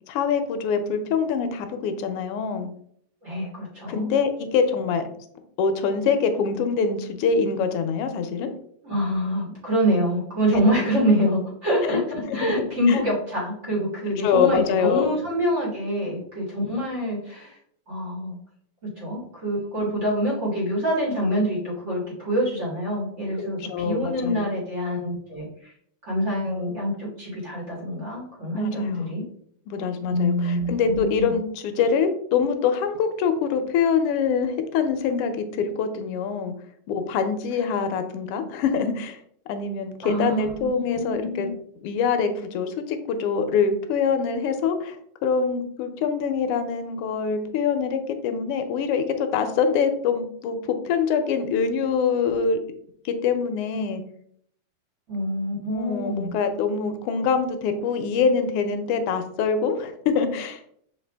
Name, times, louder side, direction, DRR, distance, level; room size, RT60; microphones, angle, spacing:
voice 1, 0.1-2.7 3.9-5.0 5.6-8.5 10.5-10.6 11.8-11.9 12.3-12.4 12.9-13.0 14.2-15.1 19.8-19.9 23.4-24.5 28.5-29.1 29.7-36.5 36.9-39.2 39.5-41.5 41.8-45.0 45.2-52.6 53.0-54.0 55.7-60.6, left 6 dB, 90° left, 8 dB, 1.6 m, -24 dB
voice 2, 3.2-4.1 8.8-17.5 17.9-18.4 19.0-25.7 26.0-29.2 30.1-31.3 40.0-41.5 55.1-56.3, equal, 35° right, -5 dB, 1.7 m, -26 dB
5.8 x 2.7 x 3.3 m, 0.66 s
omnidirectional pair, 2.4 m